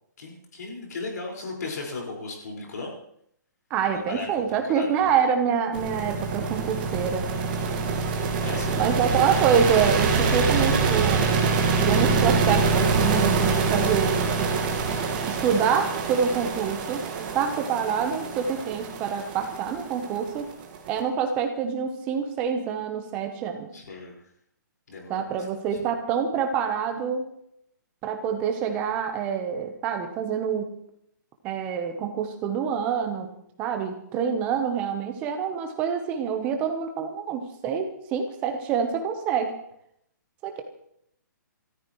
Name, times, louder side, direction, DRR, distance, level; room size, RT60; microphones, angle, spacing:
voice 1, 0.2-2.9 3.9-5.1 8.4-9.0 23.7-24.2 24.9-25.4 25.7-25.8, left 3 dB, 60° left, -1 dB, 5.1 m, -36 dB
voice 2, 3.7-7.3 8.8-11.5 11.8-14.5 15.3-20.5 20.9-23.7 25.1-27.3 28.0-30.7 31.4-33.3 33.6-39.5 40.4-40.6, right 7 dB, 15° right, 6 dB, 0.9 m, -26 dB
sound 1, 5.7-20.9, right 4 dB, 30° right, 1.7 m, -25 dB
28.5 x 13.5 x 3.1 m, 0.73 s
hypercardioid pair, 175°, 10 cm